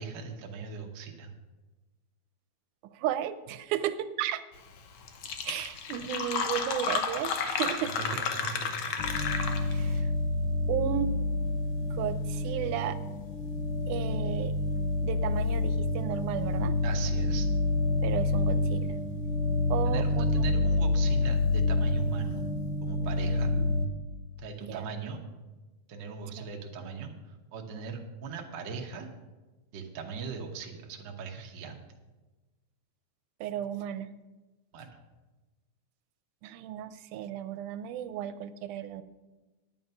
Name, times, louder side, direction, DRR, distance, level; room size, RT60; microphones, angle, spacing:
voice 1, 0.0-1.3 7.8-8.9 16.8-17.5 19.8-22.5 22.8-23.5 24.4-25.2 25.9-29.1 29.7-31.8 34.7-34.9, right 5 dB, 65° right, 2 dB, 1.1 m, -40 dB
voice 2, 2.9-4.4 5.5-7.9 9.7-10.1 10.4-11.1 11.8-13.0 13.9-14.6 15.0-16.7 18.0-18.9 19.7-20.3 23.6-23.7 24.6-24.9 26.4-26.5 33.4-34.1 36.4-39.0, right 10 dB, 85° right, 13 dB, 2.1 m, -34 dB
Fill (with liquid), 4.8-4.9 5.1-9.9, left 6 dB, 65° left, 1.3 m, -32 dB
sound 1, 9.0-23.9, left 2 dB, 85° left, 2.5 m, -28 dB
9.9 x 9.3 x 5.5 m, 1.2 s
omnidirectional pair, 3.5 m